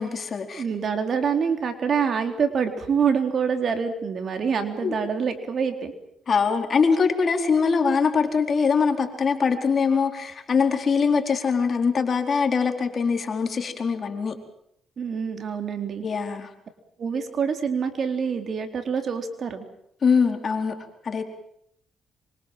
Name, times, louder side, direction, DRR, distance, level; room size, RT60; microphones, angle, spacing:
voice 1, 0.0-0.6 4.8-4.9 6.3-14.4 16.0-16.5 20.0-20.7 21.0-21.2, left 5 dB, 45° left, 5 dB, 4.3 m, -23 dB
voice 2, 0.5-5.9 15.0-16.0 17.0-19.7, right 6 dB, 50° right, 6 dB, 4.0 m, -26 dB
26.0 x 24.5 x 7.6 m, 0.73 s
cardioid pair, 90°, 0 cm